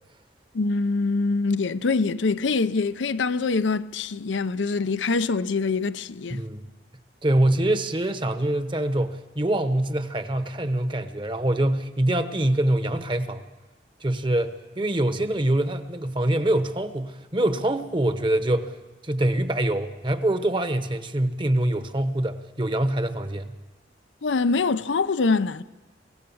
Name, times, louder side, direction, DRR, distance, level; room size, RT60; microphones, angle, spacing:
voice 1, 0.5-6.4 24.2-25.6, left 4 dB, 90° left, 0.6 m, -24 dB
voice 2, 6.3-6.7 7.2-13.4 14.0-18.7 19.0-23.5, right 1 dB, 25° right, 1.0 m, -24 dB
24.5 x 16.5 x 7.0 m
head